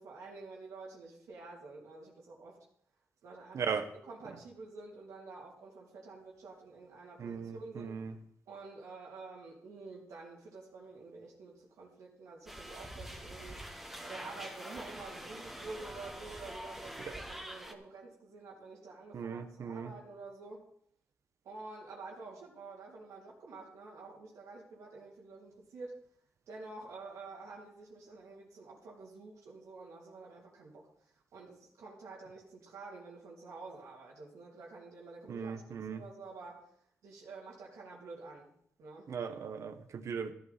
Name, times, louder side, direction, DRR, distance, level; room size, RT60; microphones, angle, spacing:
voice 1, 0.0-2.6 3.2-3.7 4.0-8.0 8.5-13.6 14.0-20.6 21.4-26.0 26.5-35.6 35.9-36.7 37.0-38.5 38.8-39.1, right 3 dB, 90° right, -4 dB, 3.0 m, -49 dB
voice 2, 3.5-3.9 7.2-8.1 19.1-19.9 35.3-36.0 39.1-40.3, right 6 dB, 65° right, 9 dB, 1.4 m, -38 dB
sound 1, 12.5-17.7, equal, 5° right, 1.7 m, -45 dB
14.0 x 11.5 x 4.2 m, 0.67 s
cardioid pair, 80°, 5 cm